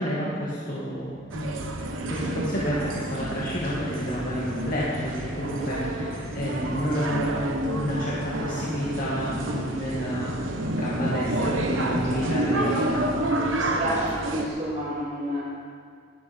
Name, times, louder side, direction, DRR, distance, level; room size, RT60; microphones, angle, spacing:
voice 1, 0.0-1.5 2.1-7.5 7.7-10.3 10.8-13.2, equal, 45° left, -8 dB, 2.3 m, -29 dB
sound 1, 1.3-14.5, right 1 dB, 90° right, 1.3 m, -29 dB
voice 2, 12.1-13.0 13.3-15.4, right 1 dB, 35° right, -7 dB, 3.1 m, -31 dB
18.0 x 11.0 x 4.6 m, 2.1 s
head